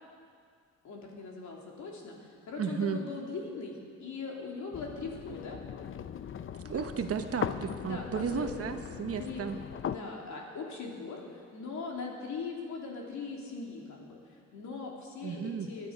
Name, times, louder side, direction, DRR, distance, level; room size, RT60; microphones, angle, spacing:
voice 1, 0.8-5.6 6.7-6.9 7.8-8.5 9.2-9.5 9.8-15.9, left 4 dB, 70° left, -1 dB, 3.2 m, -40 dB
voice 2, 2.6-3.0 6.6-9.6 15.2-15.7, right 6 dB, 50° right, 7 dB, 1.1 m, -34 dB
sound 1, 4.7-10.0, left 8 dB, 45° left, 0.6 m, -39 dB
20.5 x 11.0 x 5.3 m, 2.1 s
cardioid pair, 90°, 30 cm